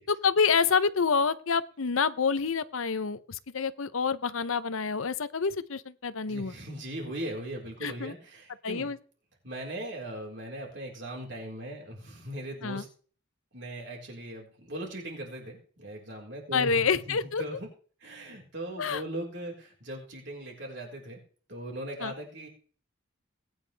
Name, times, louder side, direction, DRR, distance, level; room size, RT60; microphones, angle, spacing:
voice 1, 0.1-6.5 7.8-8.1 8.6-9.0 12.6-12.8 16.5-17.4 18.8-19.0 22.0-22.1, left 5 dB, 85° left, 15 dB, 0.7 m, -27 dB
voice 2, 6.3-8.9 9.4-12.9 13.5-17.7 18.0-21.2 21.5-22.5, right 1 dB, 60° right, 0 dB, 4.4 m, -39 dB
19.5 x 9.7 x 3.4 m, 0.42 s
head